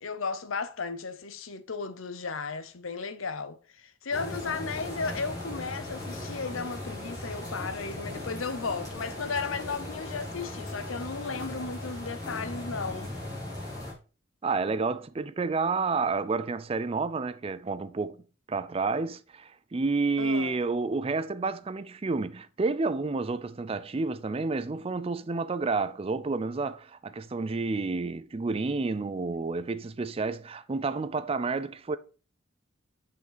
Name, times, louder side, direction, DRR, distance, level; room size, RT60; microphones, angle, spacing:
voice 1, 0.0-13.1 20.2-20.6, left 4 dB, 90° left, 0.8 m, -35 dB
sound 1, 4.1-13.9, left 1 dB, 20° left, 3.8 m, -38 dB
voice 2, 14.4-18.2 18.5-32.0, right 3 dB, 30° right, 0.4 m, -30 dB
8.1 x 5.2 x 4.0 m
head